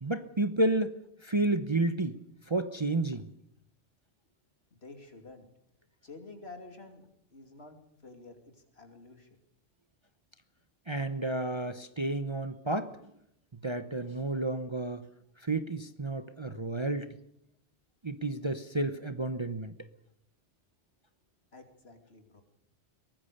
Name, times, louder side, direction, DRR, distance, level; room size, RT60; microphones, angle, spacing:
voice 1, 0.0-2.2 2.5-3.3 10.9-12.9 13.6-15.0 15.4-17.2 18.0-19.7, right 2 dB, 25° right, 9 dB, 0.9 m, -31 dB
voice 2, 4.8-5.5 6.0-9.3 21.5-22.4, left 3 dB, 60° left, 5 dB, 3.1 m, -50 dB
23.0 x 19.5 x 6.7 m, 0.75 s
omnidirectional pair, 1.2 m